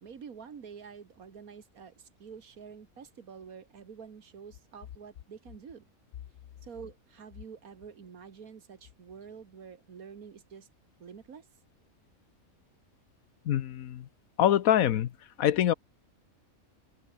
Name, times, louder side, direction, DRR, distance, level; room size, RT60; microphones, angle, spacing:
voice 1, 0.0-5.8 6.6-10.7 11.0-11.5, right 6 dB, 90° right, 2.1 m, -48 dB
voice 2, 13.4-14.1 14.4-15.1 15.4-15.7, left 11 dB, 80° left, 1.3 m, -24 dB
omnidirectional pair, 1.5 m